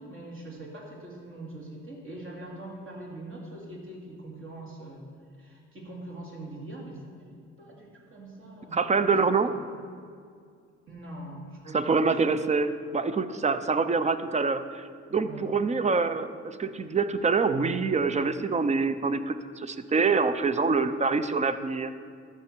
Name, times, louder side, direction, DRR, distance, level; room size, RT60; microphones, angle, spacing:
voice 1, 0.0-5.1 5.4-7.3 7.6-9.3 10.9-12.3 15.2-15.5, right 1 dB, 45° right, -2 dB, 2.5 m, -43 dB
voice 2, 8.7-9.5 11.7-21.9, right 4 dB, 25° right, 11 dB, 0.5 m, -26 dB
14.0 x 5.9 x 4.5 m, 2.2 s
cardioid pair, 90°, 30 cm